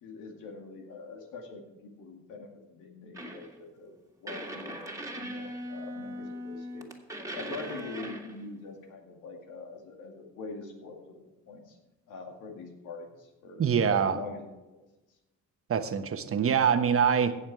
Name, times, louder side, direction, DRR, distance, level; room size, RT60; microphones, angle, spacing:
voice 1, 0.0-4.0 4.2-4.8 5.1-6.9 7.3-11.2 11.5-11.8 12.1-14.8, left 4 dB, 90° left, 3 dB, 2.3 m, -44 dB
sound 1, 3.1-3.6 4.3-8.4, equal, 10° right, 2.0 m, -39 dB
voice 2, 13.6-14.2 15.7-17.3, right 7 dB, 45° right, 9 dB, 1.1 m, -24 dB
16.0 x 7.2 x 4.8 m, 1.1 s
cardioid pair, 90°, 30 cm